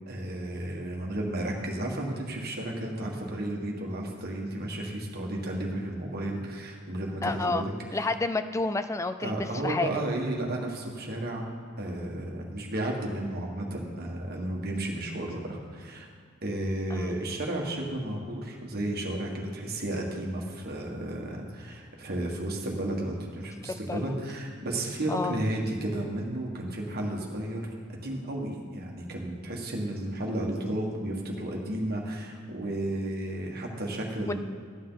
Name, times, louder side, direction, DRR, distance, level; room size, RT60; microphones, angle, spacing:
voice 1, 0.1-8.1 9.2-11.4 11.8-16.1 16.4-34.3, right 1 dB, 50° right, 0 dB, 1.6 m, -33 dB
voice 2, 7.2-7.6 7.9-9.9 16.9-17.2 23.7-24.1 25.1-25.4 34.3-34.4, left 3 dB, 15° left, 9 dB, 0.4 m, -30 dB
13.0 x 9.5 x 3.9 m, 2.2 s
head